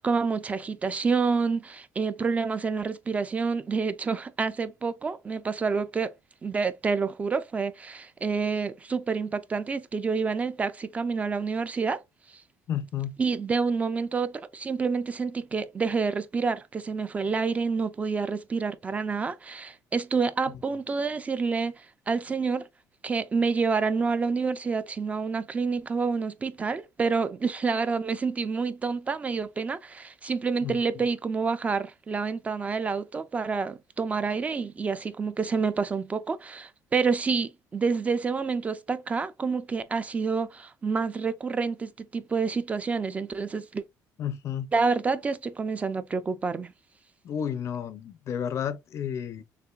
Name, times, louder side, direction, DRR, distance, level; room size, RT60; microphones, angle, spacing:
voice 1, 0.0-6.1 6.4-12.0 12.3-12.4 13.2-22.7 23.0-43.8 44.7-46.7, right 4 dB, 20° right, 0.4 m, -28 dB
voice 2, 12.7-13.2 30.6-31.1 44.2-44.7 47.2-49.4, left 9 dB, 45° left, 0.5 m, -32 dB
6.6 x 2.5 x 2.3 m
cardioid pair, 155°, 7 cm